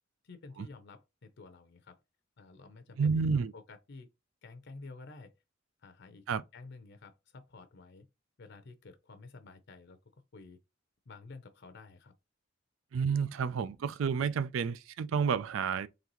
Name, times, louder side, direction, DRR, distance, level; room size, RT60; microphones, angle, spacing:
voice 1, 0.2-2.0 2.4-4.1 4.4-5.4 5.8-6.3 6.5-8.1 8.4-10.6 11.1-12.1, left 3 dB, 60° left, 0.6 m, -51 dB
voice 2, 3.0-3.5 6.3-6.4 12.9-15.9, right 6 dB, 75° right, 0.4 m, -30 dB
3.9 x 3.3 x 3.0 m
head